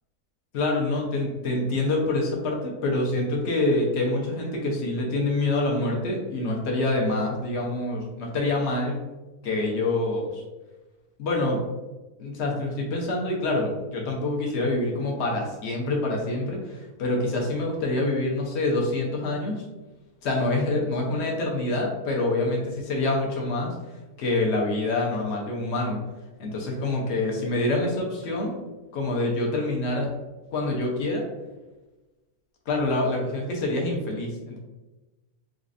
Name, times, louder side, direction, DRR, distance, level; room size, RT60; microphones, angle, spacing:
voice 1, 0.5-9.0 9.4-10.4 11.2-11.6 12.2-19.6 20.2-23.7 24.2-26.0 26.4-28.6 28.9-30.1 30.5-31.3 32.7-34.6, left 2 dB, 50° left, -1 dB, 0.9 m, -26 dB
4.1 x 2.5 x 2.5 m, 1.1 s
omnidirectional pair, 1.7 m